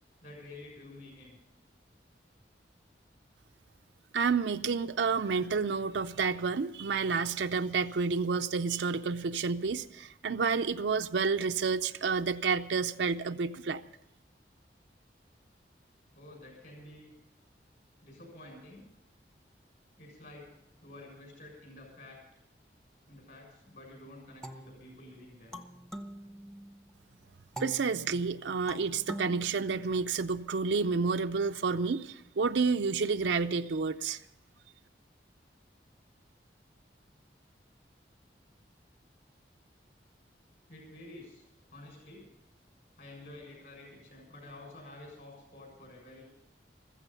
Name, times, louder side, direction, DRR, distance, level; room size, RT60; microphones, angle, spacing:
voice 1, 0.2-1.4 16.1-17.1 18.0-18.8 20.0-20.5 20.8-22.2 23.1-25.6 40.7-42.3 43.0-46.3, left 2 dB, 55° left, 0 dB, 6.8 m, -50 dB
voice 2, 4.1-13.8 27.6-34.2, right 5 dB, 80° right, 7 dB, 0.5 m, -30 dB
sound 1, 24.4-26.9 27.6-30.4, right 1 dB, 5° left, 0.7 m, -45 dB
15.0 x 15.0 x 5.7 m, 0.83 s
head